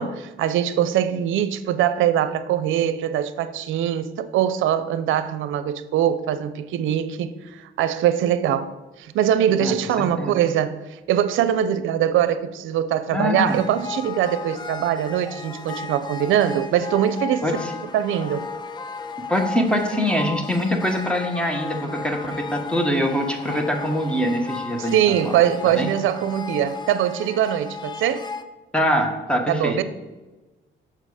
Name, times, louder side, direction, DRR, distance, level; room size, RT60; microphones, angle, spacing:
voice 1, 0.0-8.7 9.0-17.4 17.9-18.5 24.8-28.3 29.5-29.8, right 10 dB, 80° right, 0.5 m, -22 dB
voice 2, 9.6-10.3 13.1-13.6 17.4-17.7 19.3-25.4 25.8-25.9 28.7-29.8, equal, 5° left, 1.2 m, -24 dB
sound 1, 13.5-28.4, left 5 dB, 20° left, 0.5 m, -35 dB
6.6 x 5.2 x 4.9 m
cardioid pair, 90°, 20 cm